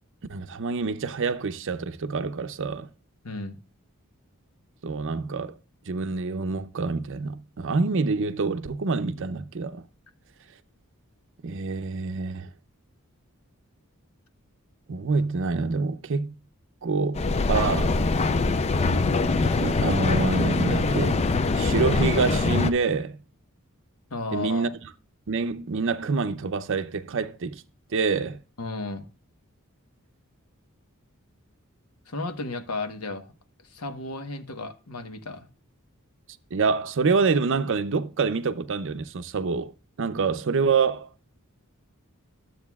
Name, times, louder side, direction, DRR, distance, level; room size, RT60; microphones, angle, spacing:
voice 1, 0.3-2.9 4.8-5.6 5.9-9.8 11.4-12.5 14.9-16.3 16.8-18.0 19.6-21.2 21.5-23.2 24.3-24.7 25.3-27.6 27.9-28.4 36.5-39.7 40.0-41.1, right 4 dB, 60° right, 0.6 m, -26 dB
voice 2, 3.2-3.6 24.1-24.7 28.6-29.1 32.1-33.3 33.7-35.5, left 3 dB, 90° left, 1.2 m, -34 dB
Mechanical fan, 17.1-22.7, left 3 dB, 30° left, 0.4 m, -23 dB
12.5 x 7.7 x 2.3 m
head